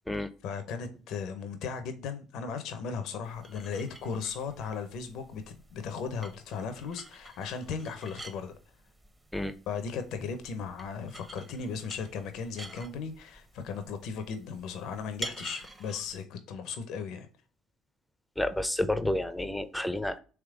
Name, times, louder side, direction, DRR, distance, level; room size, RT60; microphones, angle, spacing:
voice 1, 0.4-8.5 9.7-17.3, left 5 dB, 70° left, 0.7 m, -37 dB
sound 1, 3.2-16.2, right 1 dB, 15° right, 0.9 m, -48 dB
voice 2, 18.4-20.2, left 1 dB, 5° left, 0.6 m, -30 dB
3.6 x 3.1 x 4.7 m
supercardioid pair, 70°, 0 cm